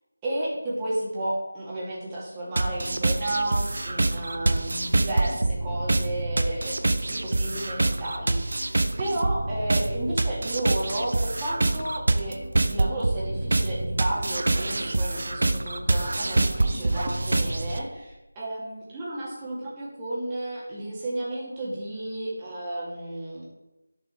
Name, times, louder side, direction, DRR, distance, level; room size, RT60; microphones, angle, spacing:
voice 1, 0.2-12.4 12.7-23.5, right 1 dB, 15° right, -6 dB, 2.2 m, -32 dB
sound 1, 2.6-17.8, right 2 dB, 50° right, 0.8 m, -26 dB
11.5 x 6.8 x 4.5 m, 1.0 s
figure-of-eight pair, 170°, 0 cm